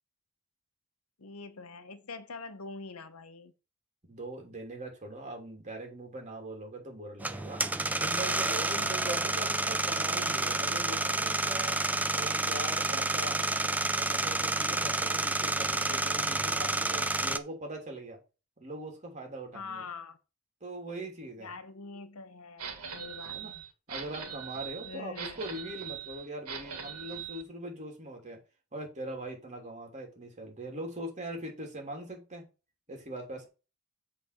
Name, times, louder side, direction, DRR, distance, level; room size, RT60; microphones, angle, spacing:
voice 1, 1.2-3.5 8.7-9.0 19.5-20.2 21.4-23.6 24.8-25.4, left 4 dB, 80° left, 1.0 m, -44 dB
voice 2, 4.0-7.7 8.0-11.8 12.1-13.4 13.9-18.2 18.6-19.8 20.6-21.5 23.3-23.5 23.9-28.4 28.7-32.5 32.9-33.5, right 1 dB, 35° right, 3.1 m, -41 dB
sound 1, 7.2-17.4, right 2 dB, 5° right, 0.5 m, -29 dB
sound 2, 22.6-27.4, right 7 dB, 90° right, 2.2 m, -41 dB
7.9 x 4.2 x 6.7 m
head